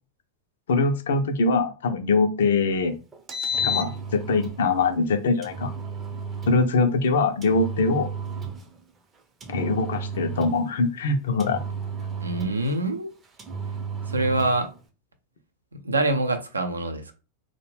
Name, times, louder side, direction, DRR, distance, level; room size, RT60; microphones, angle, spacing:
voice 1, 0.7-3.0 3.6-5.7 6.5-8.1 9.5-11.6, left 3 dB, 60° left, 0.4 m, -23 dB
Engine, 3.1-4.6 5.4-6.6 7.4-8.7 9.4-10.7 11.4-12.7 13.4-14.6, right 2 dB, 20° right, 0.5 m, -32 dB
voice 2, 12.2-13.1 14.1-14.7 15.7-17.1, right 2 dB, 80° right, 0.4 m, -25 dB
2.4 x 2.1 x 3.2 m
figure-of-eight pair, 90°, 0 cm